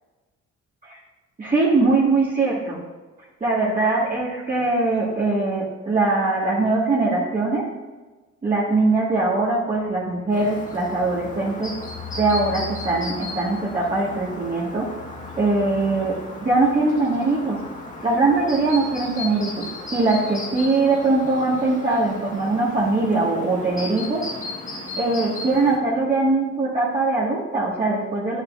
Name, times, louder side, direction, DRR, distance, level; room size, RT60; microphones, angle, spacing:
voice 1, 1.4-2.8 3.4-7.7 8.4-11.7 12.2-14.9 15.4-16.1 16.4-17.6 18.0-19.6 19.9-24.2 25.0-28.4, right 3 dB, 25° right, -8 dB, 1.7 m, -21 dB
sound 1, 9.8-19.4 19.7-19.8 20.1-20.6, left 10 dB, 45° left, 1.2 m, -43 dB
Chirp tweet, 10.3-25.8, left 2 dB, 25° left, 1.7 m, -36 dB
10.0 x 5.8 x 2.5 m, 1.2 s
cardioid pair, 90°, 30 cm